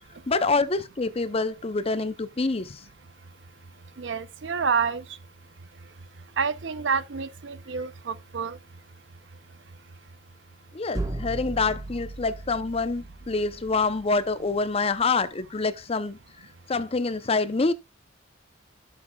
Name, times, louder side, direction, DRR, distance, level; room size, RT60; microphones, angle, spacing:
voice 1, 0.3-2.8 10.7-16.2 16.7-17.7, left 3 dB, 30° left, 0.6 m, -26 dB
voice 2, 4.0-5.0 6.4-8.6, right 5 dB, 75° right, 0.6 m, -28 dB
sound 1, 10.9-14.8, right 2 dB, 20° right, 1.2 m, -37 dB
12.0 x 6.9 x 2.3 m
head